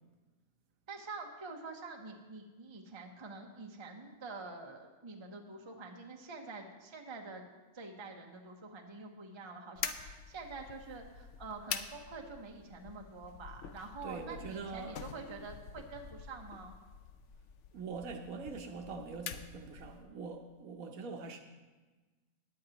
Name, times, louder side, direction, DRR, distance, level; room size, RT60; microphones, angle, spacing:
voice 1, 0.9-7.4 7.7-16.7, right 3 dB, 25° right, 2 dB, 0.8 m, -47 dB
sound 1, 9.8-20.1, left 7 dB, 65° left, 0.9 m, -46 dB
voice 2, 14.0-15.0 15.3-15.4 17.7-21.4, right 4 dB, 80° right, 4 dB, 1.2 m, -43 dB
16.5 x 10.5 x 2.9 m, 1.3 s
omnidirectional pair, 1.4 m